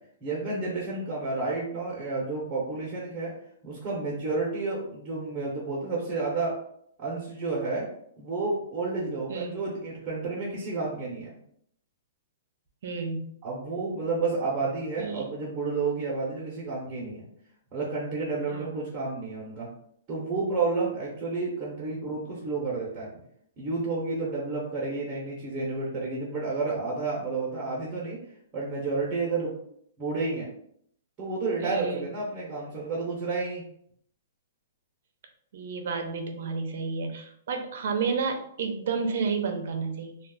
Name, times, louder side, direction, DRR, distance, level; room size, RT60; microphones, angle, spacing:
voice 1, 0.2-3.3 3.6-6.6 7.0-7.9 8.2-11.4 13.4-17.2 17.7-19.7 20.1-23.2 23.6-28.2 28.5-29.5 30.0-30.5 31.2-33.6, right 3 dB, 20° right, -6 dB, 0.8 m, -30 dB
voice 2, 9.3-9.6 12.8-13.3 15.0-15.2 18.5-18.7 31.6-32.1 35.5-40.2, right 5 dB, 55° right, 4 dB, 0.6 m, -31 dB
2.3 x 2.3 x 3.7 m, 0.69 s
hypercardioid pair, 165°, 0 cm